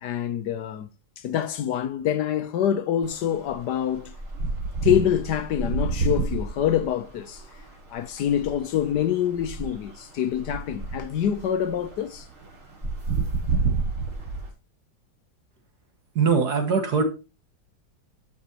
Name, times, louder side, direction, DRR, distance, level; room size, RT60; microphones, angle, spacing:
voice 1, 0.0-0.9 1.2-4.1 4.8-7.4 7.9-12.3, left 10 dB, 70° left, 1.3 m, -26 dB
sound 1, 3.0-3.1 3.5-14.5, right 4 dB, 45° right, 3.5 m, -30 dB
voice 2, 16.2-17.0, right 5 dB, 60° right, 2.4 m, -21 dB
11.5 x 5.9 x 2.9 m
omnidirectional pair, 1.9 m